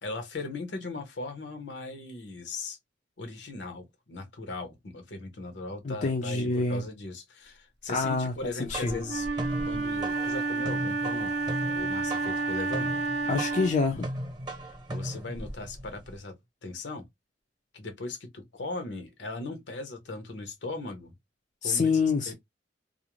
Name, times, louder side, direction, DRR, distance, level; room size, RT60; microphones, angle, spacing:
voice 1, 0.0-2.8 3.2-9.3 9.6-11.3 11.7-12.9 14.9-17.1 17.7-21.1 21.6-21.9 22.3-22.4, left 2 dB, 70° left, 0.8 m, -38 dB
voice 2, 5.8-6.8 7.9-8.3 8.7-9.0 13.3-14.1 21.6-22.3, left 4 dB, 40° left, 0.4 m, -26 dB
sound 1, 8.4-16.2, right 1 dB, 25° right, 0.8 m, -38 dB
Wind instrument woodwind instrument, 9.0-13.9, right 4 dB, 65° right, 0.6 m, -30 dB
2.4 x 2.0 x 2.9 m
head